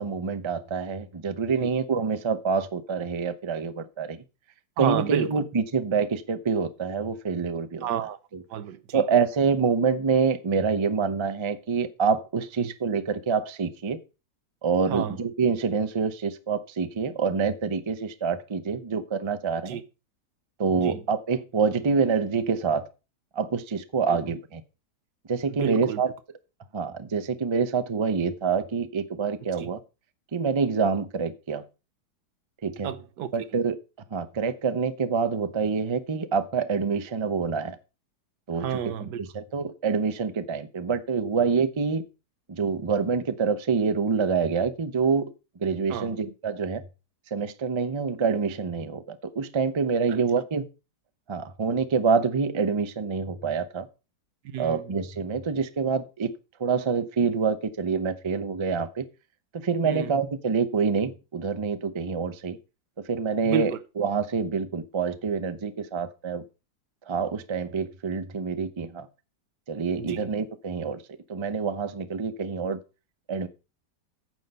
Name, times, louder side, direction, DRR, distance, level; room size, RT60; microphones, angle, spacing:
voice 1, 0.0-4.2 4.8-7.9 8.3-8.4 8.9-14.0 14.6-19.8 20.6-22.8 23.4-24.6 25.3-26.1 26.7-29.8 30.3-31.6 32.6-32.9 33.3-33.8 34.1-37.8 38.5-42.0 42.5-45.3 45.6-46.8 47.3-50.7 51.3-53.9 54.6-56.3 56.6-59.1 59.5-62.6 63.1-66.4 67.1-69.1 69.7-71.0 71.3-72.8 73.3-73.5, right 5 dB, 35° right, 0.4 m, -26 dB
voice 2, 4.8-5.4 7.8-8.2 8.5-9.0 12.6-12.7 14.9-15.2 19.7-19.8 20.8-21.0 25.5-26.0 29.6-29.7 32.8-33.3 38.6-39.2 45.9-46.1 50.1-50.2 54.5-54.9 59.8-60.2 63.4-63.7 70.0-70.3, right 10 dB, 90° right, 1.5 m, -30 dB
9.2 x 6.4 x 5.4 m
omnidirectional pair, 1.8 m